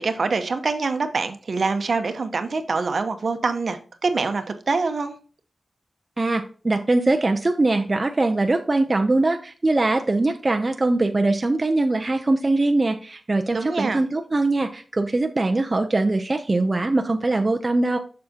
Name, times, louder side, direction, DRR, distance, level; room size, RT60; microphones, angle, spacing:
voice 1, 0.0-5.1 13.5-14.0, right 4 dB, 60° right, 8 dB, 0.9 m, -25 dB
voice 2, 6.2-18.0, right 2 dB, 30° right, 5 dB, 0.6 m, -22 dB
7.0 x 6.3 x 2.8 m, 0.38 s
wide cardioid pair, 95°, 0 cm